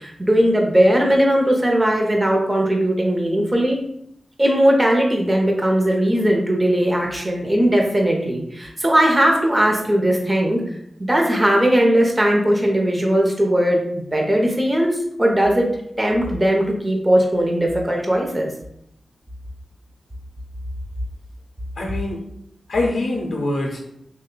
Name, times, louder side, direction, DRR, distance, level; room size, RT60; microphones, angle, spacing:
voice 1, 0.0-3.8 4.4-10.6 11.0-15.7 16.0-18.5, right 1 dB, 25° right, 0 dB, 0.8 m, -18 dB
voice 2, 21.8-22.2 22.7-23.8, left 2 dB, 80° left, 0 dB, 0.5 m, -24 dB
3.1 x 2.2 x 3.7 m, 0.75 s
cardioid pair, 40°, 0 cm